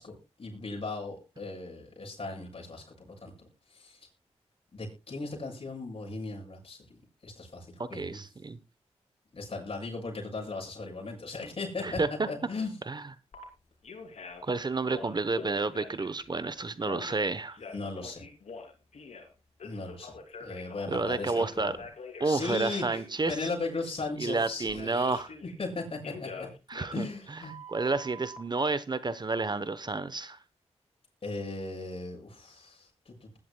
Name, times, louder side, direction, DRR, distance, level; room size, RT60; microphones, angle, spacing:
voice 1, 0.0-4.0 4.7-8.2 9.3-12.0 12.3-12.7 17.7-18.2 19.6-21.7 22.2-22.8 23.3-26.5 26.9-27.5 31.2-33.4, left 3 dB, 55° left, -1 dB, 7.1 m, -37 dB
voice 2, 7.8-8.6 11.8-12.3 12.9-13.0 14.4-17.6 20.9-21.8 22.2-23.5 24.2-25.3 26.7-27.4 27.7-30.4, right 3 dB, 40° right, 15 dB, 0.9 m, -30 dB
Telephone, 13.3-13.4 13.8-14.5 14.8-16.2 16.8-19.3 19.6-22.3 22.7-23.0 24.3-25.7 26.0-28.4, left 3 dB, 80° left, 2.9 m, -44 dB
20.5 x 11.0 x 2.2 m, 0.27 s
cardioid pair, 60°, 11 cm